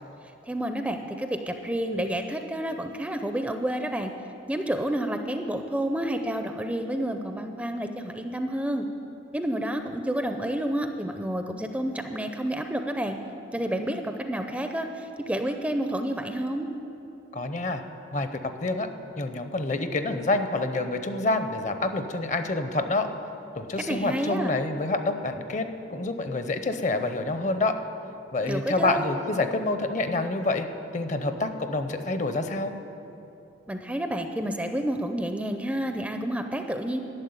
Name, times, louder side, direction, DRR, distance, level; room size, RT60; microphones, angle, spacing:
voice 1, 0.4-4.1 4.5-8.8 9.3-13.2 13.5-16.7 23.9-24.6 28.5-29.1 33.7-37.0, right 1 dB, 5° right, 6 dB, 0.5 m, -29 dB
voice 2, 17.3-17.8 18.1-18.9 19.2-23.1 23.5-27.8 28.3-30.7 30.9-32.7, left 2 dB, 40° left, 8 dB, 0.7 m, -27 dB
12.0 x 7.1 x 9.6 m, 3.0 s
head